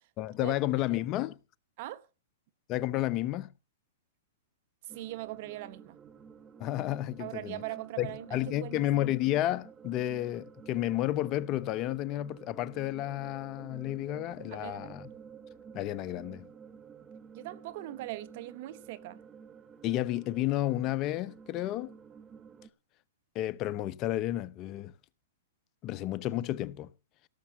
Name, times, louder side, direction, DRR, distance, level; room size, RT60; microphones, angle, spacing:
voice 1, 0.2-1.4 2.7-3.5 6.6-7.6 8.0-15.1 15.7-16.5 19.8-22.0 23.3-24.9 25.8-26.9, left 14 dB, 35° left, 0.8 m, -31 dB
sound 1, 4.9-22.7, right 6 dB, 20° right, 1.6 m, -51 dB
voice 2, 4.9-6.0 7.2-8.8 14.5-14.9 17.3-19.2, right 16 dB, 55° right, 1.1 m, -40 dB
17.0 x 7.2 x 7.1 m
hypercardioid pair, 130°, 0 cm